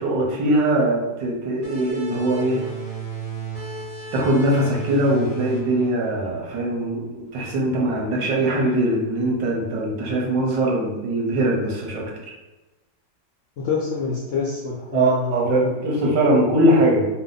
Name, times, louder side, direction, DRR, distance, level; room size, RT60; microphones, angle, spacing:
voice 1, 0.0-2.6 4.1-12.1 14.9-17.1, right 1 dB, 90° right, -1 dB, 1.5 m, -21 dB
sound 1, 1.6-6.9, right 3 dB, 25° right, 1.2 m, -34 dB
voice 2, 13.6-15.7, left 4 dB, 70° left, -4 dB, 0.7 m, -26 dB
3.4 x 2.1 x 3.8 m, 1.1 s
omnidirectional pair, 1.8 m